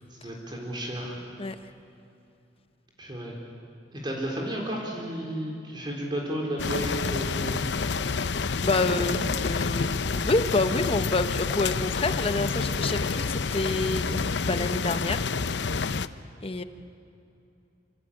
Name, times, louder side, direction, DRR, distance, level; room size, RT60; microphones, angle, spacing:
voice 1, 0.1-1.2 3.0-3.4 3.9-7.6 9.0-9.1, right 1 dB, 25° right, -1 dB, 3.9 m, -33 dB
sound 1, 6.6-16.1, left 4 dB, 75° left, 0.7 m, -28 dB
voice 2, 8.6-9.2 9.4-15.2 16.4-16.6, left 3 dB, 35° left, 9 dB, 1.1 m, -28 dB
26.5 x 26.0 x 8.6 m, 2.7 s
head